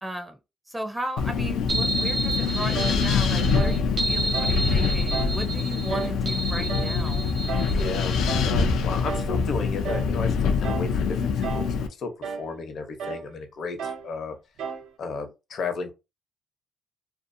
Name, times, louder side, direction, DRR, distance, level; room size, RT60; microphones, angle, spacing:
voice 1, 0.0-0.4 0.7-7.3 11.1-11.4, right 1 dB, 10° right, 0.5 m, -36 dB
Wind, 1.2-11.9, left 5 dB, 85° left, 0.4 m, -25 dB
sound 1, 1.7-8.3, right 2 dB, 60° right, 0.8 m, -31 dB
sound 2, 2.7-3.0 3.5-3.8 4.3-4.6 5.1-5.4 5.9-6.2 6.7-7.0 7.5-7.8 8.3-8.5 9.0-9.4 9.8-10.2 10.6-10.9 11.4-11.8 12.2-12.5 13.0-13.3 13.8-14.1 14.6-14.9, right 6 dB, 80° right, 0.5 m, -33 dB
voice 2, 7.7-8.2 8.4-14.4 15.0-15.9, left 4 dB, 65° left, 0.8 m, -34 dB
2.5 x 2.4 x 2.6 m
cardioid pair, 90°, 0 cm